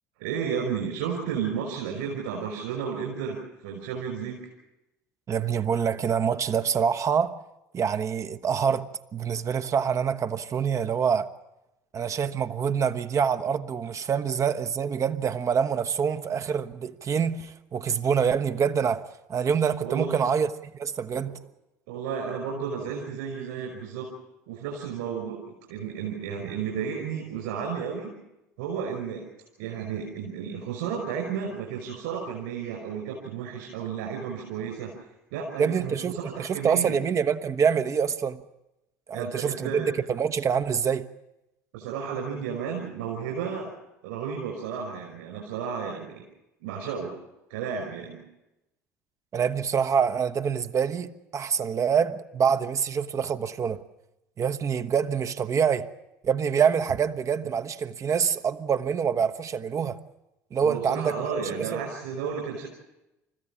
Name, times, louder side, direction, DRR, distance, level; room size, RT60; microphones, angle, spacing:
voice 1, 0.2-4.4 19.8-20.3 21.2-21.3 21.9-24.1 24.5-28.1 28.6-29.3 29.6-34.9 35.3-37.0 39.1-39.9 41.7-43.7 44.0-46.3 46.6-47.1 47.5-48.2 60.6-62.7, right 7 dB, 65° right, 5.4 m, -33 dB
voice 2, 5.3-7.3 7.7-11.3 11.9-19.0 19.3-20.5 20.8-21.4 35.6-38.4 39.1-41.1 49.3-53.8 54.4-55.9 56.2-60.0 60.5-61.8, right 7 dB, 35° right, 1.0 m, -26 dB
29.5 x 15.0 x 7.2 m
figure-of-eight pair, 60°, 9 cm